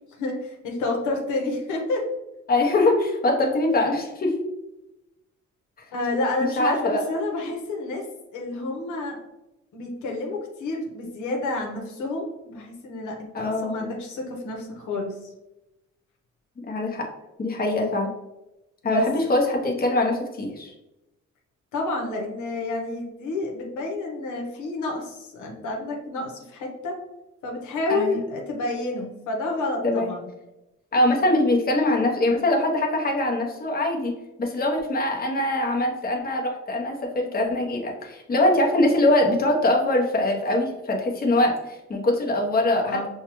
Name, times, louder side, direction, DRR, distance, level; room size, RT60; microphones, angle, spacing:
voice 1, 0.2-2.1 5.9-8.1 8.3-9.2 9.7-15.3 18.8-19.1 21.7-27.0 27.4-30.3 42.8-43.1, left 2 dB, 85° left, 1 dB, 0.9 m, -29 dB
voice 2, 2.5-4.3 6.4-7.0 13.3-13.9 16.6-17.1 17.4-18.1 18.8-20.7 27.9-28.2 29.8-30.1 30.9-34.1 34.4-43.1, left 1 dB, 30° left, 0 dB, 0.9 m, -23 dB
5.5 x 2.3 x 3.0 m, 0.97 s
cardioid pair, 90°, 30 cm